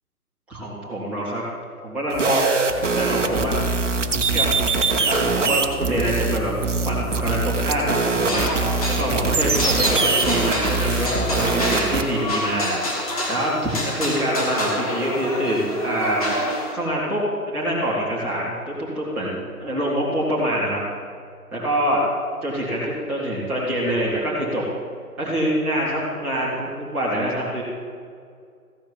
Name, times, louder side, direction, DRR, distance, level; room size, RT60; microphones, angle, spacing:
voice 1, 0.5-1.4 1.8-2.7 2.9-3.6 4.3-4.5 4.9-6.5 6.8-8.5 8.9-12.8 13.3-16.3 16.7-20.8 21.5-22.0 22.4-24.6 25.2-27.6, equal, 5° right, -11 dB, 1.8 m, -25 dB
sound 1, 2.1-12.0, right 4 dB, 50° right, 1.2 m, -23 dB
sound 2, 8.2-16.7, left 1 dB, 25° left, 1.5 m, -27 dB
15.5 x 5.2 x 7.2 m, 2.2 s
figure-of-eight pair, 150°, 46 cm